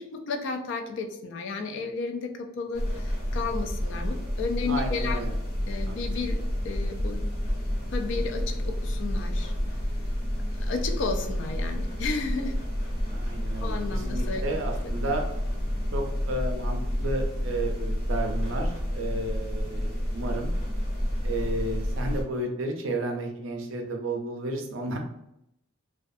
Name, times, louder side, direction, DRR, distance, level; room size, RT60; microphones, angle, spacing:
voice 1, 0.0-5.2 5.7-7.2 7.9-9.5 10.6-12.6 13.6-14.6, left 4 dB, 60° left, 5 dB, 0.3 m, -33 dB
sound 1, 2.7-22.2, equal, 80° left, 1.0 m, -29 dB
voice 2, 4.7-5.3 5.9-6.0 13.1-15.2 15.9-20.5 21.2-25.0, right 1 dB, 65° right, 3 dB, 0.5 m, -32 dB
2.4 x 2.2 x 2.5 m, 0.80 s
head